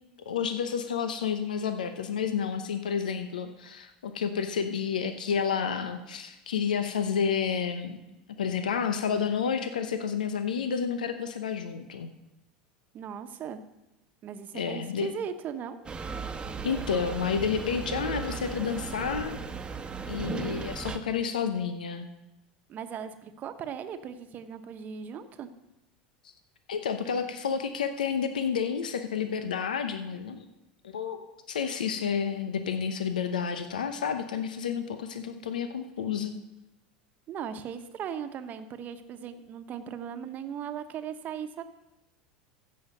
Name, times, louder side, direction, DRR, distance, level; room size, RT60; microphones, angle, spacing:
voice 1, 0.3-8.0 8.4-12.1 14.5-15.1 16.6-19.4 20.1-22.1 26.7-30.4 30.8-31.2 31.5-36.3, left 7 dB, 80° left, 8 dB, 0.8 m, -30 dB
voice 2, 12.9-13.6 14.2-15.8 22.7-25.5 37.3-41.6, right 8 dB, 40° right, 9 dB, 1.1 m, -38 dB
sound 1, 15.8-21.0, right 5 dB, 20° right, 1.1 m, -36 dB
14.5 x 5.6 x 6.7 m, 0.95 s
hypercardioid pair, 85°, 4 cm